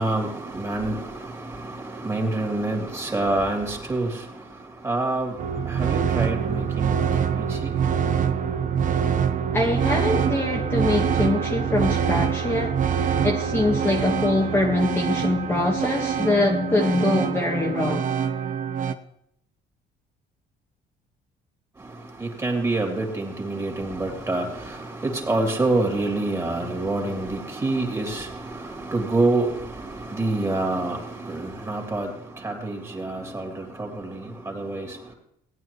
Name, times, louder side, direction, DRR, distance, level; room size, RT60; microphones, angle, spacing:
voice 1, 0.0-8.0 21.8-35.1, right 2 dB, 15° right, 3.1 m, -27 dB
sound 1, 5.4-18.9, right 8 dB, 50° right, 0.9 m, -25 dB
voice 2, 9.5-12.8 13.2-18.1, left 2 dB, 15° left, 1.4 m, -23 dB
17.5 x 9.4 x 3.1 m
cardioid pair, 110°, 17 cm